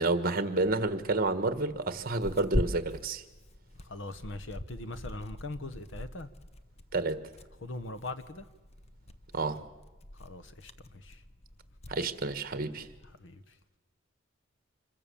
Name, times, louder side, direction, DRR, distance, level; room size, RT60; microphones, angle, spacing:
voice 1, 0.0-3.2 6.9-7.2 9.3-9.6 11.9-12.9, right 3 dB, 50° right, 1.6 m, -29 dB
Tearing, 0.5-13.1, left 1 dB, 35° left, 0.8 m, -42 dB
voice 2, 3.8-6.3 7.6-8.5 10.2-11.2 13.2-13.4, left 2 dB, 70° left, 1.4 m, -41 dB
26.5 x 22.0 x 7.1 m
head